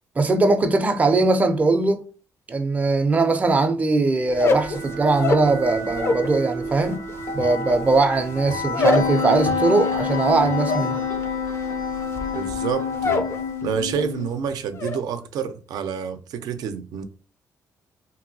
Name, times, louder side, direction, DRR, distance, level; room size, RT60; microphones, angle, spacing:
voice 1, 0.2-2.0 2.5-7.0 7.3-11.0, right 3 dB, 25° right, 0.4 m, -20 dB
sound 1, 4.2-13.7, left 1 dB, 85° left, 1.1 m, -31 dB
sound 2, 4.3-6.3 6.6-13.4 13.7-14.2 14.5-15.0, left 3 dB, 40° left, 0.4 m, -26 dB
Wind instrument woodwind instrument, 8.8-14.4, left 8 dB, 65° left, 0.7 m, -29 dB
voice 2, 12.3-13.3 13.6-17.0, right 7 dB, 85° right, 0.4 m, -28 dB
2.9 x 2.6 x 2.6 m
cardioid pair, 125°, 6 cm